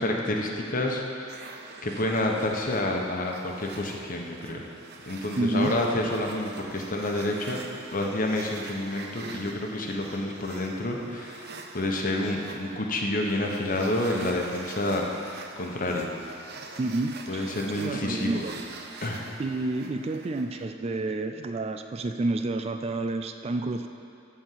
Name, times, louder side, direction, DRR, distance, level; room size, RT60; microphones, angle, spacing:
voice 1, 0.0-1.5 1.8-4.6 5.1-7.6 7.9-11.5 11.7-16.1 17.3-18.4 19.0-19.2, left 1 dB, 45° left, 0 dB, 1.1 m, -29 dB
sound 1, 1.3-20.6, right 4 dB, 55° right, 0.7 m, -45 dB
voice 2, 5.4-5.8 16.8-18.5 19.4-23.9, right 2 dB, 30° right, 7 dB, 0.3 m, -29 dB
12.5 x 4.3 x 7.7 m, 2.6 s
head